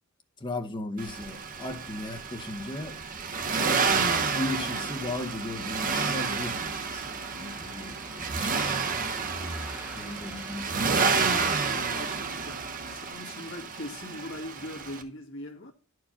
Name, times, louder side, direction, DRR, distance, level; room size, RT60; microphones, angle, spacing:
voice 1, 0.4-3.0 3.5-4.0 4.3-9.1 9.9-11.7, left 2 dB, 20° left, 0.9 m, -37 dB
Accelerating revving vroom, 1.0-15.0, right 5 dB, 40° right, 0.8 m, -30 dB
Musical instrument, 3.9-13.1, right 2 dB, 60° right, 1.7 m, -51 dB
Car passing by / Engine, 6.1-12.8, right 1 dB, 10° right, 0.9 m, -45 dB
voice 2, 10.6-12.6 12.9-15.7, left 1 dB, 60° left, 1.7 m, -41 dB
10.0 x 4.7 x 5.7 m
head